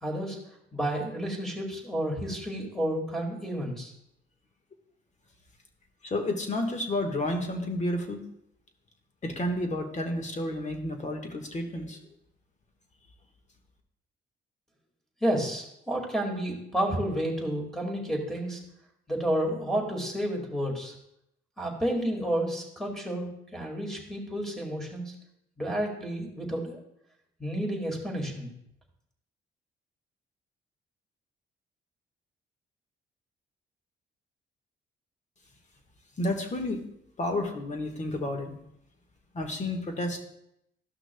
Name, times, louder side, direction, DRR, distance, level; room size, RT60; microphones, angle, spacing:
voice 1, 0.0-0.4 0.7-3.9 15.2-18.6 19.1-20.9 21.6-25.1 25.6-26.8 27.4-28.5, right 1 dB, ahead, 0 dB, 2.1 m, -30 dB
voice 2, 6.0-8.2 9.2-12.0 36.2-36.8 37.2-38.5 39.3-40.2, left 1 dB, 35° left, 4 dB, 1.5 m, -31 dB
13.0 x 6.0 x 2.3 m, 0.77 s
cardioid pair, 90°, 20 cm